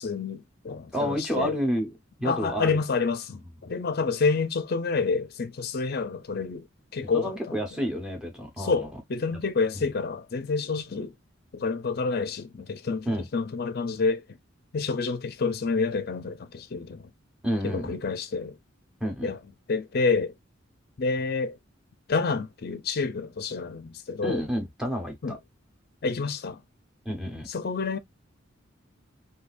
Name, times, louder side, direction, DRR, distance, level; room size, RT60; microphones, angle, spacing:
voice 1, 0.0-1.5 2.2-6.7 6.9-7.5 8.6-11.1 11.5-13.1 13.3-14.2 14.7-17.1 17.6-18.6 19.2-19.4 19.7-20.3 21.0-21.6 22.1-24.4 25.2-25.4 26.0-26.6 27.5-28.0, left 4 dB, 50° left, 0.5 m, -28 dB
voice 2, 0.9-2.8 7.1-8.9 9.7-9.9 13.1-13.3 17.4-18.0 19.0-19.3 24.2-25.4 27.0-27.5, equal, 5° right, 1.1 m, -30 dB
3.8 x 2.7 x 2.5 m
head